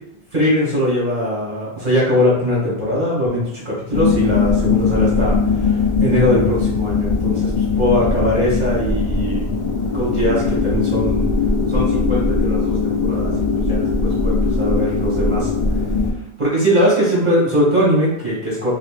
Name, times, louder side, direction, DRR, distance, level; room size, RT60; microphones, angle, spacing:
voice 1, 0.3-9.5 9.9-11.3 11.7-15.5 16.4-18.7, equal, 45° right, -6 dB, 1.4 m, -20 dB
sound 1, 3.9-16.1, left 4 dB, 35° left, 0.6 m, -19 dB
5.3 x 2.5 x 2.4 m, 0.78 s
omnidirectional pair, 1.1 m